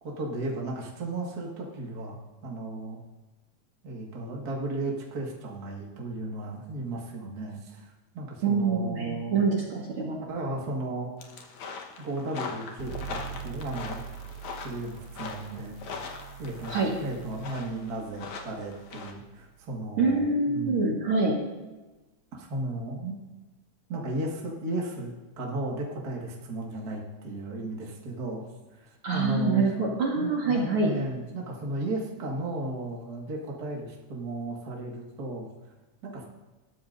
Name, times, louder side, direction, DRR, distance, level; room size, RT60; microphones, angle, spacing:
voice 1, 0.0-2.2 2.4-3.0 3.8-9.4 10.3-11.1 12.0-14.0 14.6-15.8 16.4-20.3 20.5-20.8 22.3-23.2 23.9-25.1 25.4-28.4 28.7-29.7 30.1-35.5 36.0-36.3, right 2 dB, 35° right, -2 dB, 2.1 m, -35 dB
voice 2, 8.4-10.2 16.7-17.0 20.0-21.4 29.0-31.0, right 3 dB, 50° right, -2 dB, 2.4 m, -25 dB
sound 1, 11.2-19.1, left 5 dB, 75° left, 2.6 m, -41 dB
sound 2, 12.8-20.1, right 8 dB, 70° right, 1.3 m, -44 dB
20.5 x 13.0 x 2.7 m, 1.1 s
omnidirectional pair, 3.4 m